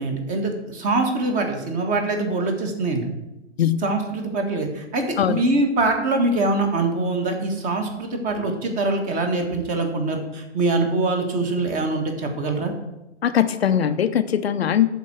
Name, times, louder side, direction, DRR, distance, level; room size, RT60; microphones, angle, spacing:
voice 1, 0.0-3.0 3.8-12.7, right 2 dB, 20° right, 4 dB, 1.7 m, -23 dB
voice 2, 13.2-14.9, left 9 dB, 60° left, 10 dB, 0.7 m, -20 dB
11.5 x 4.5 x 7.6 m, 0.95 s
figure-of-eight pair, 120°, 36 cm